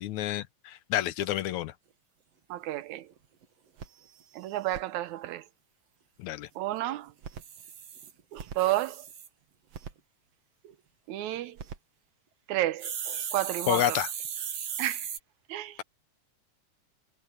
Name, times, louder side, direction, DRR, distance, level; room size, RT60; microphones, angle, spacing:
voice 1, 0.0-1.7 6.2-6.5 13.7-14.1, left 13 dB, 75° left, 2.2 m, -29 dB
voice 2, 2.5-3.1 4.3-5.4 6.6-7.1 8.3-9.1 11.1-11.6 12.5-14.0 14.8-15.1 15.5-15.8, right 15 dB, 80° right, 2.1 m, -31 dB
sound 1, 2.6-2.7 3.1-3.2 3.4-3.5 3.8-4.8 7.1-9.3 9.7-9.9 11.4-11.8 12.8-15.2, right 8 dB, 60° right, 2.7 m, -37 dB
omnidirectional pair, 3.4 m